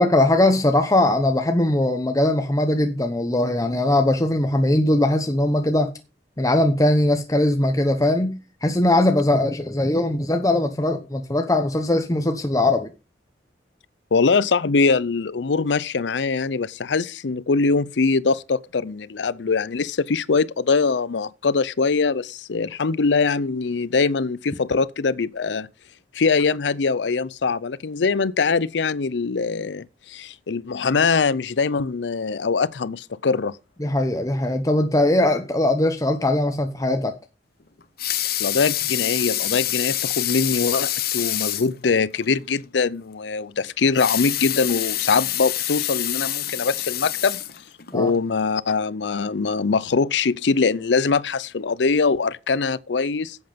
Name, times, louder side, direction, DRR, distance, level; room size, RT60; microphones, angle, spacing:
voice 1, 0.0-5.9 6.4-12.9 33.8-37.1 47.9-48.1, left 1 dB, 20° left, 0.9 m, -20 dB
voice 2, 14.1-25.7 26.1-33.6 38.4-47.4 47.9-53.4, left 4 dB, 90° left, 0.6 m, -22 dB
Water tap faucet / Sink (filling or washing) / Liquid, 37.8-41.8 42.2-42.3 42.6-42.7 43.8-48.0 48.6-48.7, left 13 dB, 60° left, 1.0 m, -26 dB
10.5 x 7.9 x 5.2 m
head